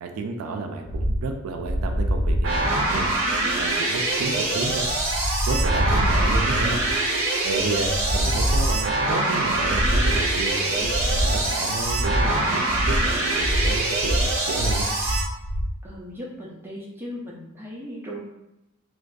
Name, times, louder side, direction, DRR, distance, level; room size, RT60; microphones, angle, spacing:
voice 1, 0.0-3.1 3.4-4.9 5.5-6.8 7.4-14.9, right 3 dB, 80° right, 5 dB, 0.3 m, -31 dB
sound 1, 0.9-15.8, equal, 85° left, 1.4 m, -26 dB
sound 2, 2.4-15.2, right 2 dB, 65° right, 0.7 m, -24 dB
voice 2, 6.0-6.6 7.5-8.1 15.8-18.2, equal, 10° right, -5 dB, 0.5 m, -38 dB
2.5 x 2.3 x 2.2 m, 0.91 s
head